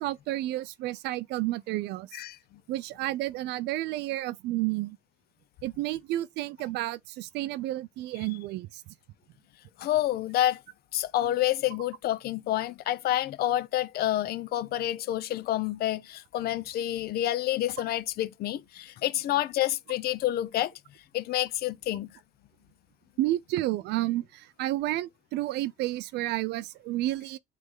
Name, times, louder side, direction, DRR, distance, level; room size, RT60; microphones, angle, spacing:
voice 1, 0.0-2.1 2.7-5.0 5.6-8.8 23.2-27.4, right 16 dB, 80° right, 0.5 m, -31 dB
voice 2, 2.1-2.6 9.8-10.6 10.9-20.7 21.1-22.1, left 13 dB, 65° left, 0.7 m, -28 dB
7.9 x 3.3 x 3.8 m
cardioid pair, 110°, 17 cm